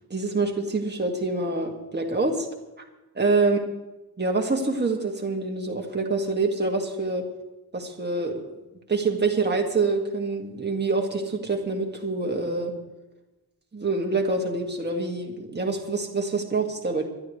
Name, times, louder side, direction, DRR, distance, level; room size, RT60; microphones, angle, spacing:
voice 1, 0.1-2.5 3.2-3.6 4.2-7.2 7.7-8.4 8.9-12.7 13.7-17.0, right 3 dB, 25° right, 1 dB, 2.1 m, -26 dB
26.5 x 12.0 x 3.3 m, 1.0 s
wide cardioid pair, 135°, 39 cm